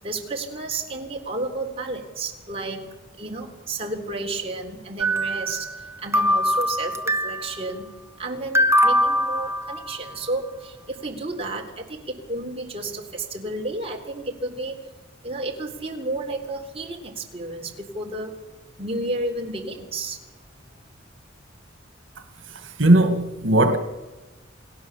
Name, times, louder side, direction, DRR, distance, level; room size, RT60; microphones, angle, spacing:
voice 1, 0.0-14.8 15.2-18.3 18.8-20.2, right 2 dB, 30° right, 3.6 m, -32 dB
sound 1, 5.0-5.9 6.1-7.5 8.5-10.1, equal, 15° right, 1.1 m, -22 dB
voice 2, 22.8-23.8, right 1 dB, 85° right, 1.8 m, -17 dB
29.5 x 18.5 x 7.3 m
head